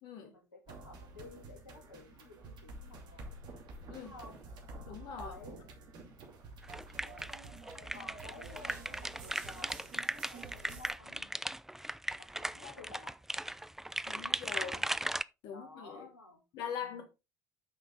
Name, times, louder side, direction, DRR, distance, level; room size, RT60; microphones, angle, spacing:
voice 1, 0.2-3.3 3.9-4.4 5.1-5.6 7.0-7.4 7.9-11.3 12.2-13.2 14.5-15.0 15.5-16.4 16.8-17.0, left 3 dB, 85° left, 2.3 m, -53 dB
sound 1, 0.7-10.9, right 2 dB, 50° right, 2.6 m, -49 dB
voice 2, 4.8-5.3 14.1-14.7 15.4-16.1 16.5-17.0, left 7 dB, 55° left, 1.5 m, -42 dB
sound 2, 6.6-15.2, right 1 dB, 5° right, 0.4 m, -38 dB
9.0 x 6.0 x 3.8 m
figure-of-eight pair, 60°, 9 cm